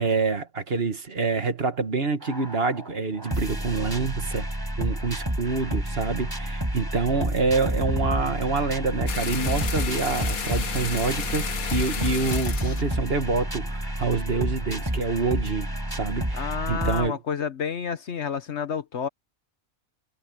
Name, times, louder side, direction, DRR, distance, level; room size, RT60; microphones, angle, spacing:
voice 1, 0.0-4.5 4.8-17.2, right 4 dB, 45° right, 1.7 m, -27 dB
sound 1, 2.2-17.1, right 1 dB, 15° right, 4.8 m, -30 dB
sound 2, 9.1-14.0, left 7 dB, 85° left, 1.7 m, -33 dB
voice 2, 16.3-19.1, left 7 dB, 55° left, 1.2 m, -30 dB
omnidirectional pair, 1.4 m